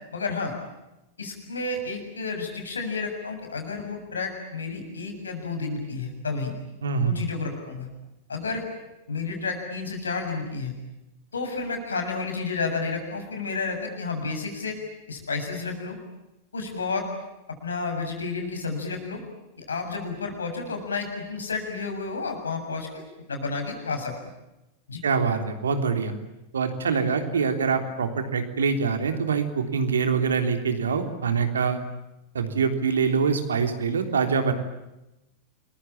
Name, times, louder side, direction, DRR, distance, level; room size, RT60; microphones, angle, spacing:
voice 1, 0.1-0.5 1.2-6.5 7.0-7.9 8.3-8.7 9.1-10.7 11.3-14.8 15.1-16.0 16.5-17.1 17.6-19.2 19.6-23.0 23.3-24.1 24.9-25.0, left 4 dB, 75° left, 4 dB, 7.4 m, -31 dB
voice 2, 6.8-7.2 25.0-26.1 26.5-31.8 32.3-34.5, right 5 dB, 70° right, 6 dB, 3.5 m, -24 dB
29.5 x 22.5 x 8.8 m, 0.94 s
figure-of-eight pair, 90°, 0 cm